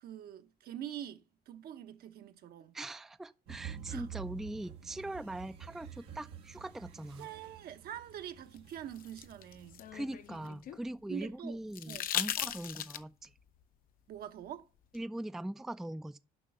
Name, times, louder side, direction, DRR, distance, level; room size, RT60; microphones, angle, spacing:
voice 1, 0.0-2.8 3.9-4.1 7.2-9.9 11.1-11.6 11.9-12.1 14.1-14.7, right 10 dB, 65° right, 1.0 m, -45 dB
voice 2, 2.7-7.3 9.9-13.3 14.9-16.2, right 1 dB, ahead, 0.4 m, -41 dB
sound 1, 3.5-10.5, right 9 dB, 90° right, 1.3 m, -49 dB
sound 2, 8.6-10.8 11.7-13.3 14.9-15.0, left 10 dB, 55° left, 0.6 m, -38 dB
7.5 x 5.5 x 6.6 m
cardioid pair, 110°, 17 cm